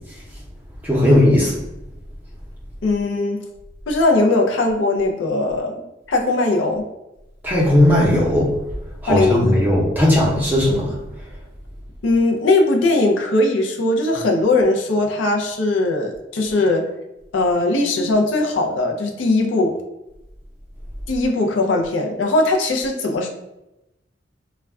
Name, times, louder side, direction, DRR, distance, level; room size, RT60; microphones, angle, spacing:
voice 1, 0.8-1.6 7.4-8.6 9.0-11.0, left 1 dB, 10° right, -5 dB, 0.6 m, -16 dB
voice 2, 2.8-3.4 3.9-6.9 9.1-9.7 12.0-16.9 17.3-19.8 21.1-23.3, left 2 dB, 80° left, 2 dB, 0.4 m, -19 dB
2.2 x 2.1 x 3.5 m, 0.91 s
head